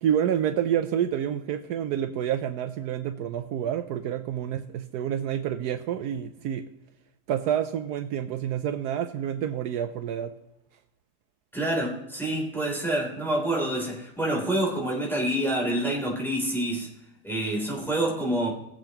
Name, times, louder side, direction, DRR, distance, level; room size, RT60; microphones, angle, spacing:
voice 1, 0.0-6.6 7.3-10.3, right 9 dB, 75° right, 9 dB, 1.1 m, -28 dB
voice 2, 11.5-16.9 17.2-18.5, right 1 dB, ahead, -4 dB, 3.1 m, -27 dB
20.0 x 7.8 x 2.9 m, 0.88 s
omnidirectional pair, 1.8 m